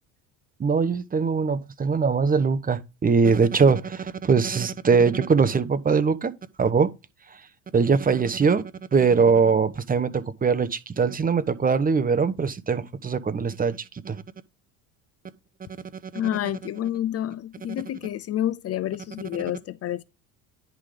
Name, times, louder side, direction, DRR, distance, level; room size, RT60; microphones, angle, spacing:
voice 1, 0.6-6.3 6.6-6.9 7.7-8.6 8.9-13.8 14.0-14.2, right 5 dB, 20° right, 1.1 m, -21 dB
voice 2, 16.1-20.0, left 11 dB, 40° left, 0.6 m, -29 dB
10.5 x 3.8 x 5.1 m
supercardioid pair, 100°, 38 cm